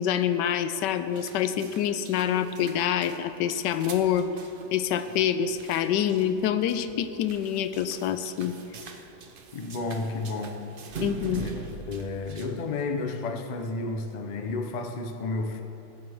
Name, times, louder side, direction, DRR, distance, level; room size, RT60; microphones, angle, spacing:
voice 1, 0.0-4.3 4.7-8.5 11.0-11.5, left 9 dB, 90° left, 11 dB, 1.2 m, -26 dB
sound 1, 1.1-13.2, right 4 dB, 50° right, 0.7 m, -43 dB
voice 2, 9.5-10.7 11.3-11.5 11.9-15.6, left 3 dB, 55° left, 6 dB, 0.4 m, -32 dB
20.0 x 8.2 x 3.5 m, 2.9 s
omnidirectional pair, 1.8 m